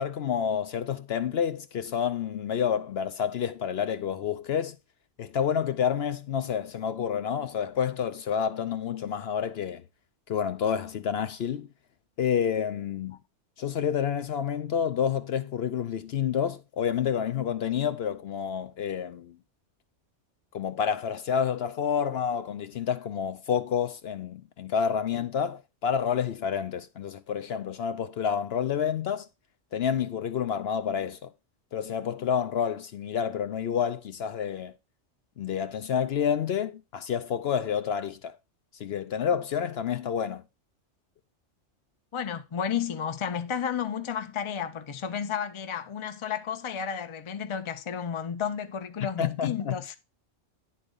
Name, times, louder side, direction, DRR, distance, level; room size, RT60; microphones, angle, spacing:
voice 1, 0.0-4.8 5.2-9.8 10.3-11.7 12.2-13.2 13.6-19.4 20.5-29.3 29.7-31.3 31.7-34.7 35.4-38.4 38.8-40.4 49.2-49.8, left 8 dB, 65° left, 0.8 m, -29 dB
voice 2, 42.1-50.0, left 7 dB, 30° left, 0.6 m, -32 dB
10.5 x 4.0 x 5.4 m
omnidirectional pair, 1.2 m